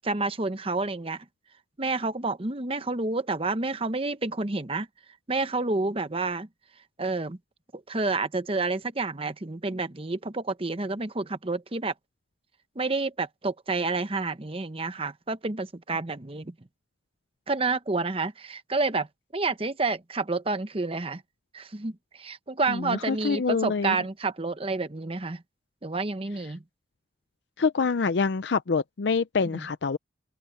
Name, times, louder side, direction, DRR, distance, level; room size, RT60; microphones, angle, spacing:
voice 1, 0.0-1.2 1.8-4.9 5.3-6.5 7.0-7.4 7.9-11.9 12.8-16.5 17.5-19.1 19.3-21.2 21.5-25.4 25.8-26.6 29.5-29.7, right 3 dB, 30° right, 0.9 m, -29 dB
voice 2, 22.7-24.0 27.6-30.0, left 5 dB, 70° left, 0.5 m, -26 dB
open air
head